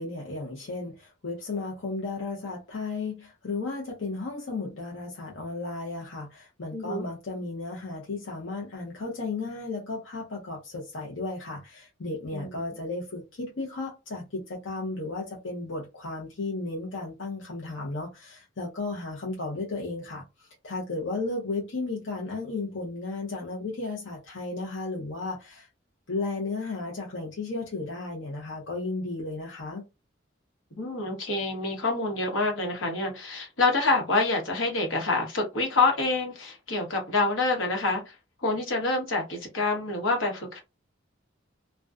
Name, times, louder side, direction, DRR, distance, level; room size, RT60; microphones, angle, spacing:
voice 1, 0.0-25.7 26.1-29.9, left 3 dB, 70° left, 0.7 m, -34 dB
voice 2, 6.7-7.1 12.3-12.6 30.8-38.1 38.4-40.6, left 3 dB, 85° left, 1.1 m, -27 dB
2.5 x 2.2 x 2.3 m
head